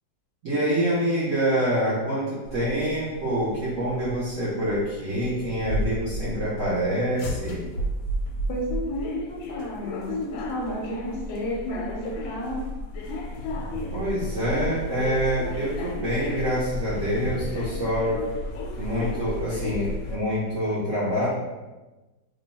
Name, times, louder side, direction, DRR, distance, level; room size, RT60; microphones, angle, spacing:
voice 1, 0.4-7.7 13.9-18.2 18.8-21.3, equal, 60° right, -7 dB, 0.8 m, -26 dB
sound 1, 2.4-20.2, left 1 dB, 85° left, 1.3 m, -33 dB
voice 2, 8.5-10.1 10.5-12.6, equal, 70° left, -3 dB, 1.1 m, -32 dB
sound 2, 13.1-14.9 16.7-17.7, equal, 90° right, 1.3 m, -39 dB
3.0 x 2.2 x 4.0 m, 1.1 s
omnidirectional pair, 2.1 m